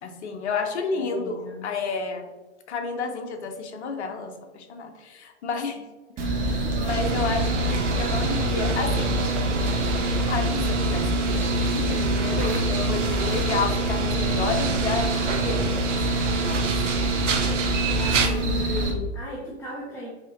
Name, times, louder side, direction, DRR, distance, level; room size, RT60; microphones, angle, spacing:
voice 1, 0.0-2.3 2.7-5.9 6.7-9.1 10.3-16.0 16.4-16.6, left 4 dB, 65° left, 5 dB, 0.8 m, -31 dB
voice 2, 0.9-1.7 6.4-6.9 17.9-20.1, left 1 dB, 5° left, -5 dB, 0.5 m, -36 dB
sound 1, 6.2-18.9, right 1 dB, 25° right, 0.8 m, -26 dB
sound 2, 6.9-18.3, right 5 dB, 85° right, 0.8 m, -28 dB
4.7 x 2.9 x 2.9 m, 1.2 s
hypercardioid pair, 115°, 36 cm